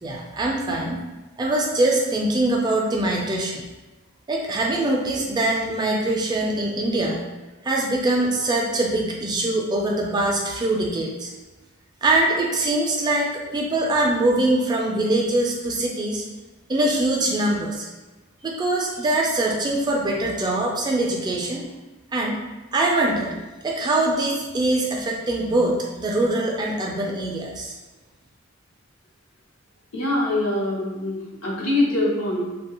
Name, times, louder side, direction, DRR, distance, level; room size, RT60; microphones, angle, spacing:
voice 1, 0.0-1.0 1.4-3.6 4.3-7.2 7.6-11.3 12.0-16.2 16.7-17.9 18.4-21.6 22.1-22.4 22.7-23.3 23.6-27.7, right 2 dB, 20° right, -1 dB, 0.3 m, -23 dB
voice 2, 29.9-32.4, left 1 dB, 75° left, -5 dB, 0.9 m, -23 dB
2.7 x 2.3 x 2.9 m, 1.1 s
head